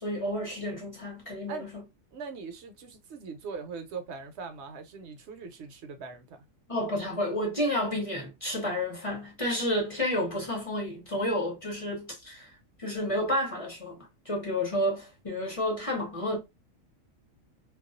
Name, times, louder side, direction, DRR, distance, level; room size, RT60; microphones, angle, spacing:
voice 1, 0.0-1.8 6.7-12.5 12.8-14.0 14.3-16.4, left 1 dB, 30° left, 0.7 m, -30 dB
voice 2, 2.1-6.4, right 5 dB, 60° right, 0.8 m, -41 dB
2.3 x 2.3 x 2.4 m
omnidirectional pair, 1.4 m